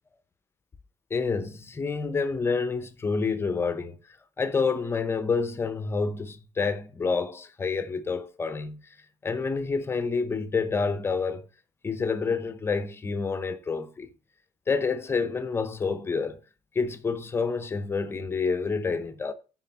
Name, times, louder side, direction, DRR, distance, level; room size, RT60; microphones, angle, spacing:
voice 1, 1.1-4.0 4.4-8.8 9.2-11.5 11.8-14.1 14.7-16.4 16.7-19.3, left 4 dB, 20° left, 0.6 m, -28 dB
9.9 x 4.2 x 4.4 m
cardioid pair, 155°, 13 cm